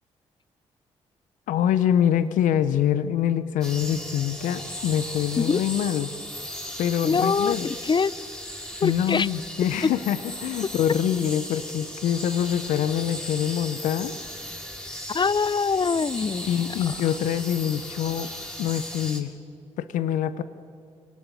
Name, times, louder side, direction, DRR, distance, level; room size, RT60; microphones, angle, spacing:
voice 1, 1.5-6.1 6.8-7.7 8.8-14.2 16.4-18.3 18.6-19.3 19.8-20.4, left 10 dB, 80° left, 13 dB, 0.8 m, -25 dB
sound 1, 3.6-19.2, equal, 5° left, 4.8 m, -37 dB
voice 2, 7.0-8.1 8.8-9.3 15.1-16.9, left 5 dB, 35° left, 20 dB, 0.6 m, -24 dB
24.0 x 18.5 x 9.1 m, 2.3 s
supercardioid pair, 45°, 13 cm